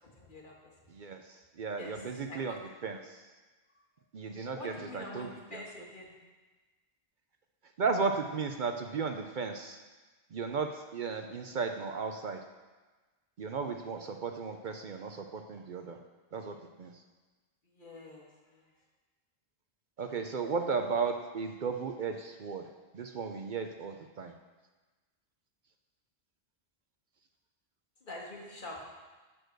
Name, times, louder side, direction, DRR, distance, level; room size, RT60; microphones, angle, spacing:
voice 1, 0.0-0.7 1.7-2.0 2.3-2.6 4.5-6.1 17.6-18.7 28.0-28.9, left 2 dB, 50° left, -2 dB, 1.8 m, -46 dB
voice 2, 0.9-2.5 2.8-3.3 4.1-5.6 7.8-9.8 10.3-12.4 13.4-16.0 16.3-16.9 20.0-22.7 22.9-24.3, right 5 dB, 55° right, 5 dB, 0.7 m, -35 dB
11.0 x 4.4 x 6.5 m, 1.3 s
omnidirectional pair, 1.0 m